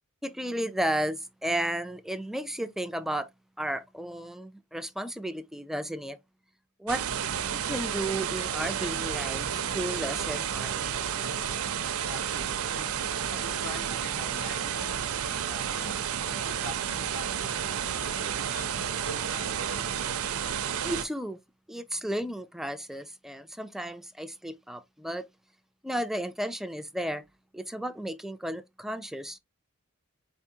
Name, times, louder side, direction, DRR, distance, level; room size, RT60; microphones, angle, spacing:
voice 1, 0.2-3.3 3.6-6.2 6.8-7.0 7.5-11.1 20.8-21.4 21.7-25.3 25.8-27.2 27.5-29.4, right 1 dB, ahead, 0.3 m, -33 dB
sound 1, 6.9-21.0, right 8 dB, 75° right, 0.5 m, -31 dB
voice 2, 12.1-13.0 13.3-16.1 16.4-20.1, left 1 dB, 85° left, 2.3 m, -45 dB
4.3 x 3.5 x 2.7 m
head